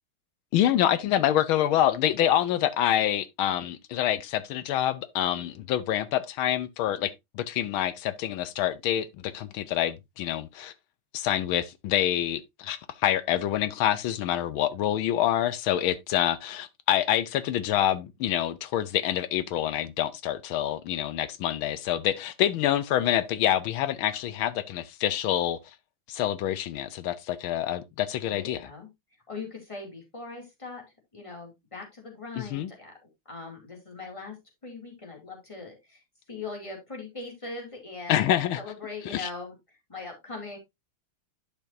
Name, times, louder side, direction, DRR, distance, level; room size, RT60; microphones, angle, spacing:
voice 1, 0.5-10.7 11.1-25.6 26.1-28.7 32.4-32.7 38.1-38.6 39.0-39.3, left 11 dB, 75° left, 1.4 m, -26 dB
voice 2, 28.2-28.9 29.3-30.8 31.1-32.9 33.3-34.4 34.6-36.0 36.3-39.5 39.9-40.6, left 3 dB, 15° left, 2.4 m, -40 dB
10.5 x 5.8 x 2.6 m
omnidirectional pair, 2.4 m